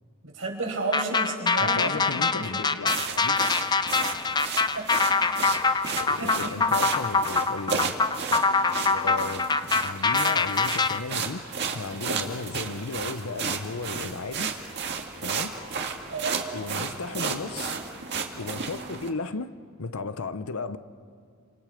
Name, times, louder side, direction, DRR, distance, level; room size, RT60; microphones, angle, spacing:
voice 1, 0.2-2.6 4.7-5.0 5.8-6.7 16.1-16.5, right 3 dB, 75° right, 5.3 m, -33 dB
sound 1, 0.9-11.0, left 4 dB, 20° left, 0.5 m, -24 dB
voice 2, 1.6-3.4 6.0-8.0 8.6-9.5 9.8-14.5 15.2-15.5 16.5-17.8 18.4-20.8, left 4 dB, 90° left, 0.8 m, -35 dB
sound 2, 2.9-19.1, right 5 dB, 55° right, 1.9 m, -33 dB
28.5 x 26.5 x 5.1 m
head